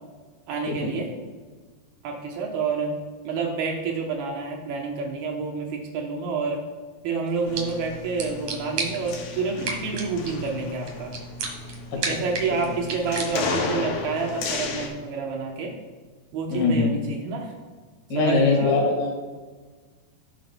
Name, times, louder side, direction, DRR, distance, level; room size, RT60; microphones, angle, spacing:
voice 1, 0.5-1.1 2.0-3.0 3.2-6.6 7.0-11.1 11.9-15.8 16.3-17.5 18.2-18.8, right 4 dB, 75° right, 0 dB, 2.8 m, -28 dB
sound 1, 7.3-13.8, right 4 dB, 60° right, 2.3 m, -35 dB
sound 2, 7.5-14.9, left 3 dB, 70° left, 2.9 m, -33 dB
voice 2, 16.5-17.0 18.1-19.1, left 3 dB, 45° left, -1 dB, 1.4 m, -22 dB
16.5 x 7.2 x 2.3 m, 1.4 s
omnidirectional pair, 4.7 m